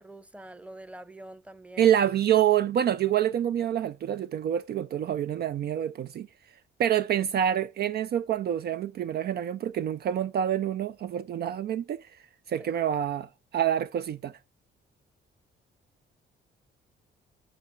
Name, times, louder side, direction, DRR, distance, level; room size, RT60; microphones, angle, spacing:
voice 1, 0.0-1.9 12.6-12.7, right 1 dB, 5° right, 0.8 m, -46 dB
voice 2, 1.8-6.3 6.8-12.0 12.5-14.3, right 10 dB, 55° right, 0.4 m, -27 dB
9.5 x 5.5 x 4.5 m
cardioid pair, 90°, 20 cm